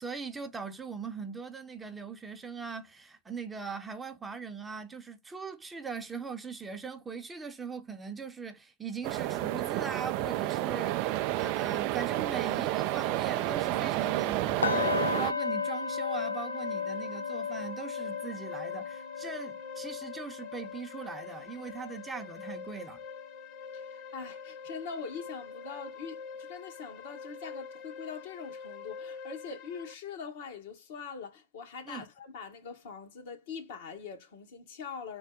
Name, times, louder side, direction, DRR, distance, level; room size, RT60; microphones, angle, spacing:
voice 1, 0.0-23.0 31.9-32.0, right 5 dB, 10° right, 0.7 m, -40 dB
sound 1, 9.0-15.3, right 15 dB, 45° right, 0.3 m, -30 dB
sound 2, 13.6-29.9, left 6 dB, 40° left, 0.7 m, -46 dB
sound 3, 14.6-24.6 24.9-25.2 25.6-25.7, left 5 dB, 80° left, 0.4 m, -36 dB
voice 2, 23.7-35.2, left 5 dB, 55° left, 1.1 m, -43 dB
3.7 x 2.1 x 3.8 m
figure-of-eight pair, 100°, 0 cm